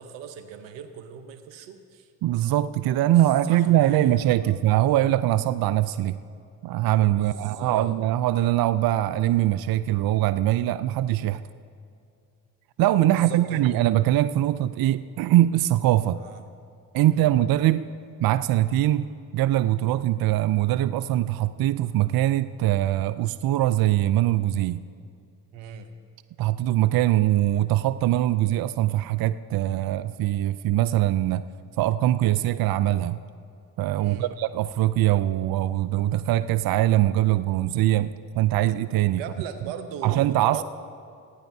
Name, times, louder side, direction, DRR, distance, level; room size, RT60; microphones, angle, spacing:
voice 1, 0.0-2.1 3.4-4.6 7.1-8.0 13.1-13.6 16.2-16.4 17.0-17.3 25.5-25.9 34.0-34.3 39.1-40.6, right 8 dB, 80° right, 10 dB, 1.0 m, -39 dB
voice 2, 2.2-6.2 6.6-11.4 12.8-16.2 16.9-17.9 18.2-19.1 19.3-24.8 26.4-31.4 31.8-33.2 33.8-39.2 40.0-40.6, right 14 dB, 55° right, 14 dB, 0.5 m, -22 dB
29.0 x 10.0 x 2.7 m, 2.4 s
hypercardioid pair, 50°, 43 cm